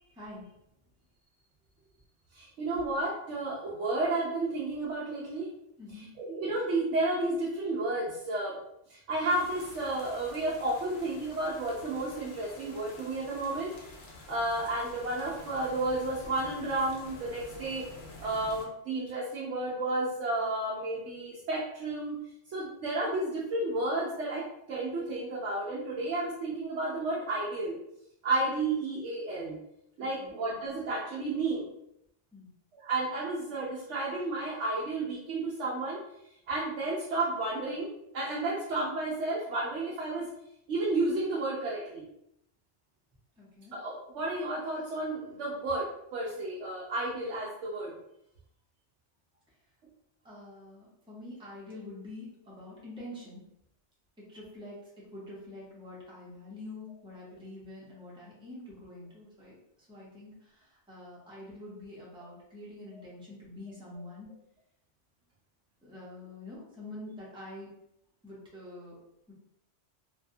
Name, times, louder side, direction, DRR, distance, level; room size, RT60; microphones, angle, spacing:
voice 1, 0.1-0.5 5.8-6.1 30.0-30.4 32.3-32.5 43.4-43.7 50.2-53.4 54.2-64.3 65.8-67.7 68.2-69.0 69.3-69.4, left 2 dB, 5° right, -6 dB, 0.7 m, -46 dB
voice 2, 2.3-5.5 6.0-8.6 8.9-13.9 14.3-17.9 18.2-22.2 22.5-27.8 28.2-29.6 30.0-31.7 32.7-36.0 36.5-40.3 40.7-42.0 43.7-47.9 62.9-63.0, right 2 dB, 90° right, -5 dB, 1.0 m, -32 dB
sound 1, 9.3-18.7, left 2 dB, 70° left, 0.8 m, -49 dB
2.7 x 2.1 x 2.6 m, 0.78 s
omnidirectional pair, 1.2 m